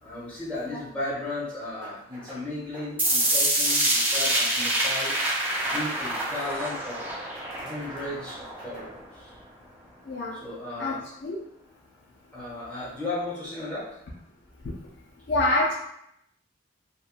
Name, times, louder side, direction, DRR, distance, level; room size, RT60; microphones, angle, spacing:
voice 1, 0.0-5.1 5.6-7.0 7.6-9.4 10.4-11.0 12.3-13.9, left 2 dB, 5° left, -11 dB, 1.3 m, -35 dB
sound 1, 1.8-2.4 2.7-3.4 3.7-4.3 4.6-5.2 5.5-6.1 6.4-7.1 7.3-8.9, right 2 dB, 30° right, 0.8 m, -47 dB
sound 2, 3.0-9.0, right 1 dB, 10° right, 0.4 m, -26 dB
voice 2, 15.3-15.7, left 2 dB, 60° left, -2 dB, 0.4 m, -25 dB
3.0 x 2.2 x 2.4 m, 0.76 s
head